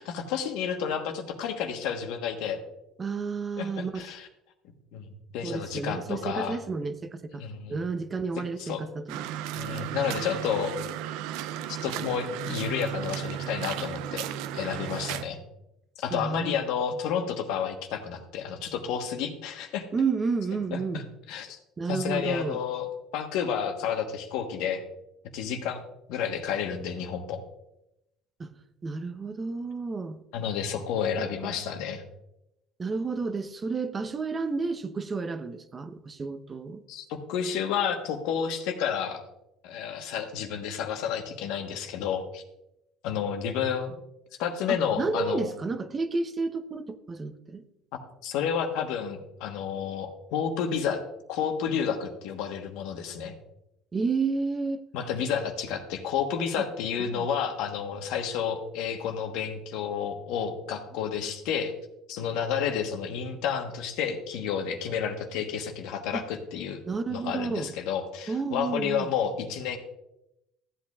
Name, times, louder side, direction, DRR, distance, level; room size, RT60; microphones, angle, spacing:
voice 1, 0.0-2.6 3.6-4.3 4.9-5.1 5.3-6.6 7.3-7.8 8.6-8.8 9.5-10.7 11.8-14.3 14.5-15.4 16.0-19.9 20.7-21.6 21.9-24.8 25.3-25.8 26.1-27.4 30.3-32.0 36.9-39.2 39.6-42.4 43.0-44.0 44.4-45.5 48.2-51.0 51.3-53.3 54.9-61.7 62.1-66.8 67.1-69.8, left 7 dB, 75° left, 1.2 m, -30 dB
voice 2, 3.0-4.1 5.4-7.4 7.7-9.4 16.1-16.6 19.9-21.1 21.8-22.6 28.4-28.5 28.8-30.2 31.2-31.5 32.8-36.8 44.7-47.6 53.9-54.8 57.0-57.3 66.1-66.3 66.8-67.7 68.3-69.1, right 4 dB, 30° right, 0.8 m, -31 dB
sound 1, 9.1-15.2, right 11 dB, 75° right, 0.5 m, -34 dB
14.0 x 8.3 x 2.4 m
supercardioid pair, 80°, 0 cm